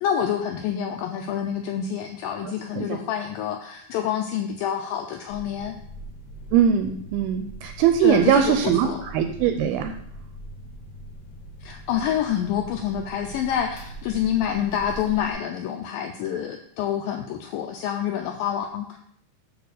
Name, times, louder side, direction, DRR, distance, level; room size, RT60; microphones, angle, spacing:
voice 1, 0.0-5.8 8.0-9.0 11.6-19.0, left 9 dB, 90° left, 5 dB, 2.0 m, -27 dB
sound 1, 5.3-15.3, right 1 dB, 55° left, 2.3 m, -41 dB
voice 2, 6.5-9.9, right 9 dB, 80° right, 6 dB, 2.4 m, -21 dB
8.2 x 4.1 x 6.4 m, 0.69 s
omnidirectional pair, 4.7 m